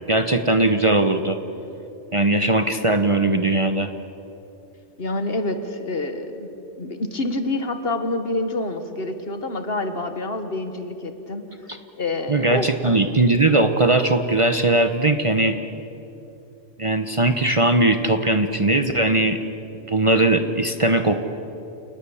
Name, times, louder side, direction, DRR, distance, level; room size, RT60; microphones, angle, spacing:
voice 1, 0.1-1.4 2.1-3.9 12.3-15.6 16.8-19.4 19.9-21.2, right 2 dB, 30° right, 7 dB, 0.9 m, -19 dB
voice 2, 5.0-6.5 6.8-11.4 12.0-13.0, left 2 dB, 55° left, 8 dB, 1.7 m, -27 dB
28.0 x 19.5 x 7.1 m, 2.9 s
omnidirectional pair, 1.2 m